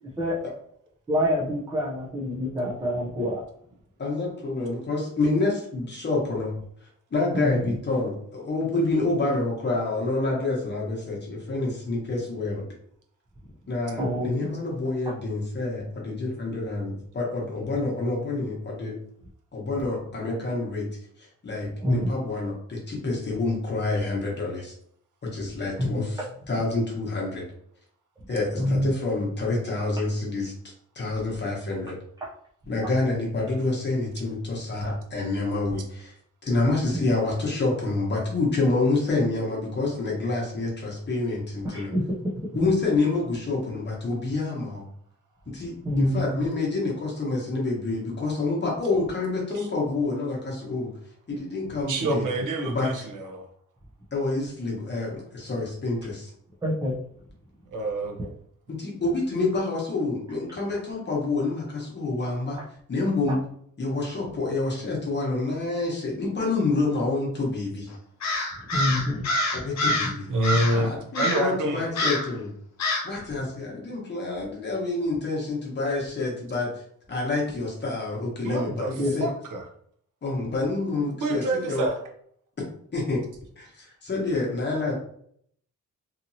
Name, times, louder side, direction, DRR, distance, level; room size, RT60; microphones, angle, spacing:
voice 1, 1.1-3.3 7.3-7.6 14.0-14.5 21.8-22.1 25.8-26.0 28.6-28.9 36.9-37.1 41.7-42.1 45.8-46.5 56.6-56.9 68.7-69.2 79.0-79.1, left 1 dB, 15° right, -5 dB, 0.4 m, -26 dB
voice 2, 4.0-6.5 7.1-12.6 13.7-19.0 19.5-20.9 21.2-24.7 25.2-27.4 28.3-30.5 30.9-32.0 32.7-36.1 36.5-41.9 42.5-44.8 45.5-50.9 51.3-52.2 52.6-53.0 54.1-56.3 58.7-62.6 62.9-63.4 63.8-67.9 69.5-72.5 73.0-76.7 77.1-79.3 80.2-81.8 82.9-83.2 83.6-84.9, left 3 dB, 35° left, -3 dB, 0.9 m, -28 dB
voice 3, 51.9-53.4 57.7-58.3 70.3-71.9 78.4-78.9 79.2-79.6 81.2-82.0, right 1 dB, 80° right, 2 dB, 0.7 m, -27 dB
Crow, 68.2-70.1 70.4-70.8 71.1-71.5 71.9-72.3 72.8-73.1, left 1 dB, 60° left, 0.5 m, -26 dB
2.8 x 2.6 x 2.6 m, 0.65 s
wide cardioid pair, 175°, 31 cm